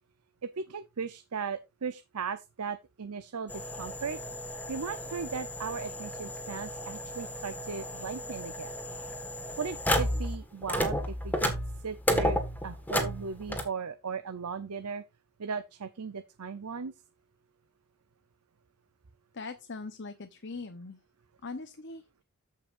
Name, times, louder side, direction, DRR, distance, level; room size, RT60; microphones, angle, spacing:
voice 1, 0.4-4.2 4.7-8.7 9.6-11.6 11.8-15.0 15.4-16.9, right 5 dB, 90° right, 0.7 m, -37 dB
sound 1, 3.5-10.4 10.6-13.6, equal, 10° left, 1.6 m, -33 dB
voice 2, 19.3-21.0 21.4-22.2, left 3 dB, 55° left, 0.9 m, -41 dB
14.0 x 5.7 x 2.6 m
head